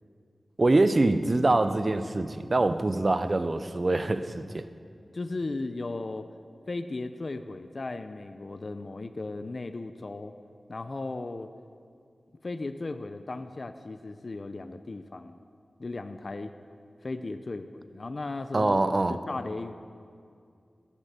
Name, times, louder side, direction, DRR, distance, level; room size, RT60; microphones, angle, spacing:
voice 1, 0.6-4.7 18.5-19.2, right 2 dB, 45° right, 11 dB, 0.7 m, -24 dB
voice 2, 5.1-6.3 6.7-10.3 10.7-11.5 12.4-15.4 15.8-16.5 17.0-18.8 19.1-19.7, left 2 dB, 50° left, 9 dB, 0.6 m, -36 dB
18.0 x 7.4 x 6.8 m, 2.3 s
wide cardioid pair, 60°, 0 cm